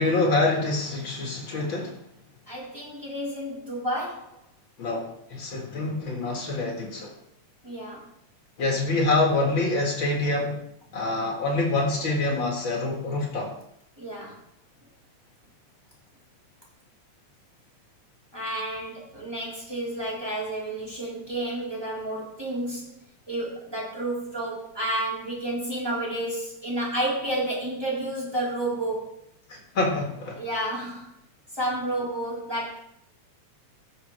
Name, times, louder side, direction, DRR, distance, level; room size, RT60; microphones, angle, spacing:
voice 1, 0.0-2.0 4.8-7.1 8.6-10.6 10.9-13.5 29.5-30.4, left 2 dB, 45° left, -1 dB, 2.2 m, -26 dB
voice 2, 2.5-4.4 7.6-8.1 14.0-14.4 18.3-22.9 23.3-29.1 30.4-31.1 31.5-32.8, right 1 dB, 10° right, -7 dB, 3.6 m, -31 dB
15.0 x 6.7 x 3.3 m, 0.73 s
omnidirectional pair, 3.4 m